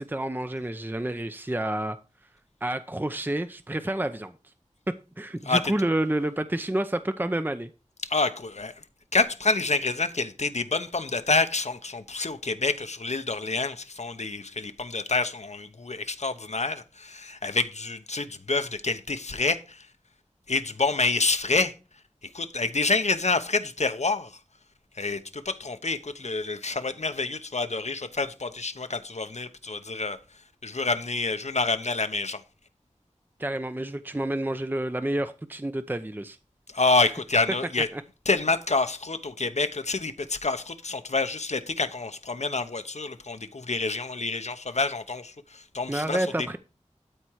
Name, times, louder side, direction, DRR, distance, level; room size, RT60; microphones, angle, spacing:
voice 1, 0.0-2.0 2.6-4.3 5.2-7.7 33.4-36.4 37.9-38.0 45.9-46.6, right 1 dB, 15° right, 0.6 m, -29 dB
voice 2, 8.0-8.7 9.1-19.9 20.5-21.7 22.3-24.3 25.0-30.2 30.6-32.4 36.7-37.9 38.3-46.2, left 3 dB, 65° left, 1.0 m, -27 dB
12.5 x 4.5 x 4.7 m
wide cardioid pair, 45°, 12 cm